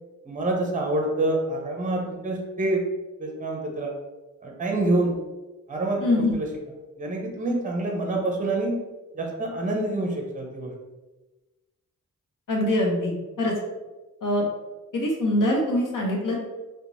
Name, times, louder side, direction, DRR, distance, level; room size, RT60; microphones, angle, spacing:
voice 1, 0.3-2.8 3.2-3.9 4.4-5.1 5.7-6.5 7.0-8.8 9.1-10.7, right 2 dB, 25° right, 1 dB, 0.6 m, -26 dB
voice 2, 6.0-6.3 12.5-13.5 14.2-14.5 14.9-16.5, left 1 dB, 75° left, -1 dB, 0.8 m, -24 dB
2.9 x 2.2 x 2.6 m, 1.1 s
cardioid pair, 65°, 32 cm